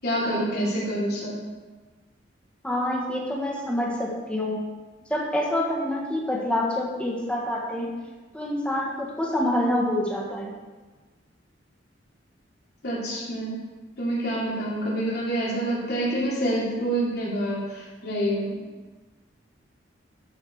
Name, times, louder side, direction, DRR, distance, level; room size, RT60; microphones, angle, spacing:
voice 1, 0.0-1.4 12.8-13.6 14.0-18.6, right 1 dB, 60° left, -6 dB, 3.3 m, -27 dB
voice 2, 2.6-4.6 5.1-8.0 8.3-10.5, left 1 dB, 5° left, -3 dB, 1.5 m, -27 dB
12.5 x 5.2 x 4.8 m, 1.3 s
head